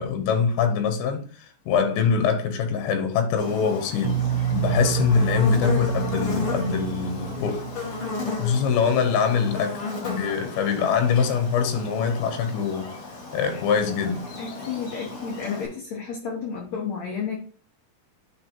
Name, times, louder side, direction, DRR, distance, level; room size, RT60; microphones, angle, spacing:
voice 1, 0.0-4.2 4.5-7.7 8.4-12.9 13.3-14.3, left 6 dB, 85° left, 2.9 m, -23 dB
Buzz, 3.4-15.7, left 4 dB, 45° left, 2.2 m, -34 dB
sound 1, 4.0-8.9, right 10 dB, 85° right, 2.4 m, -29 dB
voice 2, 14.4-17.4, left 6 dB, 65° left, 1.8 m, -31 dB
10.5 x 3.8 x 2.9 m
omnidirectional pair, 4.2 m